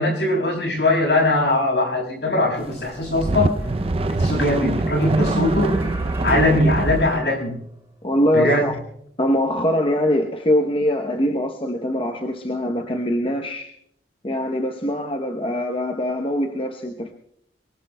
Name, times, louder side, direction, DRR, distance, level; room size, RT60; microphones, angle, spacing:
voice 1, 0.0-3.5 4.2-5.7 6.2-7.6 8.3-8.6, left 1 dB, 75° left, 0 dB, 6.2 m, -20 dB
sound 1, 2.3-7.5, right 1 dB, 15° right, 5.8 m, -36 dB
sound 2, 2.9-7.1, right 2 dB, 35° right, 0.5 m, -24 dB
voice 2, 8.0-8.8 9.2-13.7 14.2-17.1, left 1 dB, 30° left, 3 dB, 0.8 m, -23 dB
23.0 x 23.0 x 2.3 m, 0.69 s
head